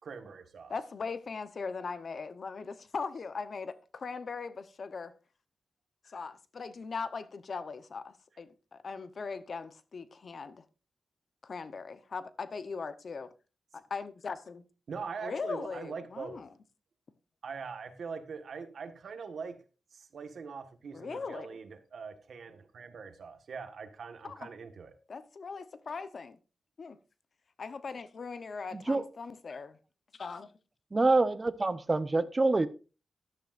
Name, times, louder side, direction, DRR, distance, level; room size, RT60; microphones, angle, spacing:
voice 1, 0.0-0.7 14.9-16.4 17.4-19.6 19.9-24.9, right 5 dB, 70° right, 1.5 m, -42 dB
voice 2, 0.7-5.1 6.0-10.6 11.4-13.3 13.7-14.6 15.2-16.5 20.9-21.6 24.2-24.5 25.1-26.4 26.8-27.0 27.6-29.8 30.1-30.5, left 4 dB, 55° left, 0.8 m, -40 dB
voice 3, 28.7-29.0 30.9-32.7, right 3 dB, 30° right, 0.8 m, -26 dB
13.5 x 11.5 x 2.5 m
wide cardioid pair, 110°, 0 cm